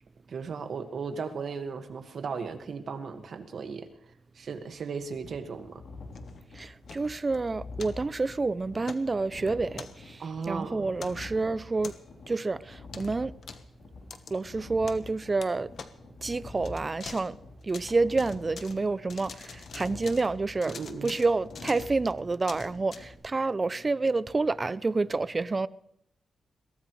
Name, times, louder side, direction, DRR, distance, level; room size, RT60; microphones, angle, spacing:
voice 1, 0.3-3.9 4.3-5.8 10.2-10.9 20.7-21.2, right 5 dB, 55° right, 1.8 m, -36 dB
sound 1, 5.0-23.1, left 3 dB, 75° left, 3.6 m, -47 dB
sound 2, 6.1-7.4 7.8-7.9 8.8-9.1 9.7-10.3 11.0-11.3 11.8-12.2 12.9-13.1 13.4-13.6 14.1-14.3 14.9-15.1 15.4-15.5 15.7-15.9 16.5-17.3 17.6-18.8 19.1-20.3 20.5-23.0, left 6 dB, 60° left, 1.3 m, -45 dB
voice 2, 6.5-11.9 12.3-13.3 14.3-15.7 16.2-17.4 17.6-20.8 21.0-25.7, right 3 dB, 25° right, 0.5 m, -28 dB
22.5 x 17.5 x 3.2 m
cardioid pair, 110°, 0 cm